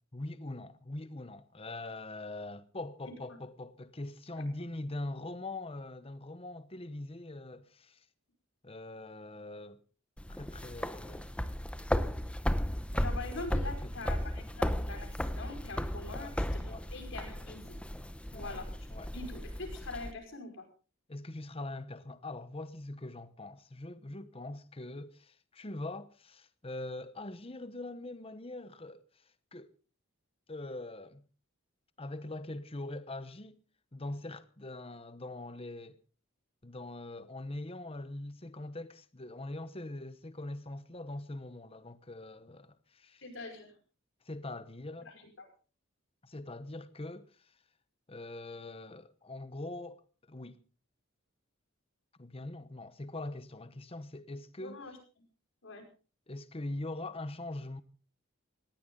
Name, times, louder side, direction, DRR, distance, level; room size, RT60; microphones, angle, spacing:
voice 1, 0.1-8.1 8.6-9.8 10.4-11.3 13.5-13.9 16.1-16.9 18.3-18.6 18.9-19.1 21.1-29.7 30.5-31.2 32.0-33.6 33.9-36.0 36.6-43.2 44.2-45.1 46.2-47.6 48.1-50.0 50.3-50.6 52.2-54.8 56.3-57.8, left 2 dB, 30° left, 1.0 m, -42 dB
sound 1, 10.2-20.1, equal, 5° left, 0.8 m, -35 dB
voice 2, 12.9-17.8 18.3-18.7 19.1-20.7 43.2-43.7 45.1-45.5 54.6-55.0 55.6-55.8, left 3 dB, 65° left, 5.2 m, -43 dB
19.0 x 16.5 x 3.9 m
head